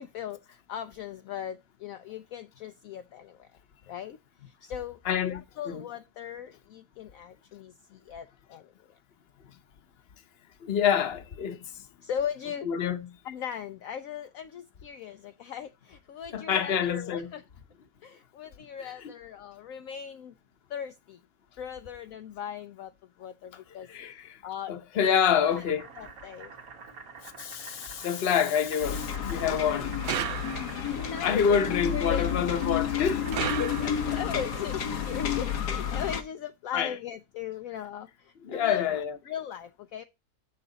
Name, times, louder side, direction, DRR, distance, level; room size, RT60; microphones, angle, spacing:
voice 1, 0.0-3.5 3.9-4.2 4.6-5.0 5.3-7.7 8.1-8.6 12.0-12.7 13.2-17.4 18.0-20.3 20.7-21.2 21.6-22.9 23.2-23.9 24.4-25.4 26.0-26.5 30.8-31.6 31.9-32.3 34.1-38.1 38.5-40.0, left 9 dB, 70° left, 0.9 m, -38 dB
voice 2, 5.0-5.8 10.6-11.6 12.6-13.1 16.3-17.3 18.8-19.1 23.9-24.4 24.7-25.9 27.4-29.9 31.2-33.2 33.6-34.2 36.7-37.0 38.4-39.2, left 7 dB, 45° left, 1.1 m, -27 dB
Boiling, 25.3-35.9, right 5 dB, 60° right, 1.7 m, -48 dB
sound 1, 28.8-36.2, left 8 dB, 90° left, 1.8 m, -31 dB
sound 2, 30.0-31.0 33.3-34.3, right 9 dB, 85° right, 0.5 m, -33 dB
7.5 x 6.9 x 3.9 m
omnidirectional pair, 1.7 m